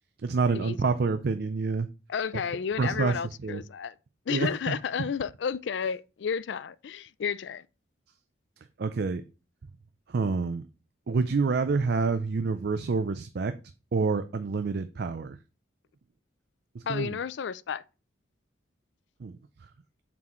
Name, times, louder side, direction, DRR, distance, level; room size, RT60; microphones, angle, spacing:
voice 1, 0.2-1.9 2.8-3.6 4.3-4.8 8.8-9.2 10.1-10.7 11.1-13.5 13.9-15.4 16.7-17.2 19.2-19.4, right 4 dB, 55° right, 0.4 m, -27 dB
voice 2, 2.1-3.9 4.3-7.6 16.9-17.8, left 7 dB, 65° left, 0.4 m, -32 dB
7.4 x 6.1 x 3.1 m
head